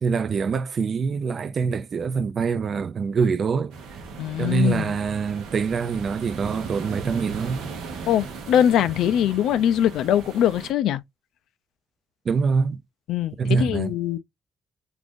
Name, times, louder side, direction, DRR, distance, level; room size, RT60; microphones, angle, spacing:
voice 1, 0.0-3.7 4.4-7.6 12.3-12.8 13.4-13.9, right 5 dB, 50° right, 0.3 m, -24 dB
sound 1, 3.7-10.7, right 4 dB, 90° right, 0.7 m, -38 dB
voice 2, 4.2-5.0 8.1-11.0 13.1-14.2, left 10 dB, 85° left, 0.3 m, -22 dB
2.5 x 2.5 x 3.5 m
cardioid pair, 90°, 0 cm